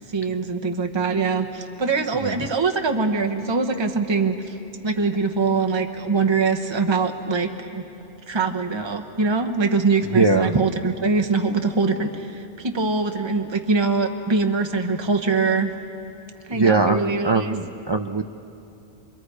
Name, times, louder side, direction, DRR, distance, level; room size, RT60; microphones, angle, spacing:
voice 1, 0.1-4.5 4.8-7.8 8.3-15.7 16.5-17.5, right 4 dB, 25° right, 5 dB, 1.0 m, -23 dB
voice 2, 10.1-10.5 16.5-18.2, right 3 dB, 45° right, 5 dB, 0.3 m, -21 dB
28.5 x 22.0 x 4.9 m, 2.8 s
omnidirectional pair, 1.2 m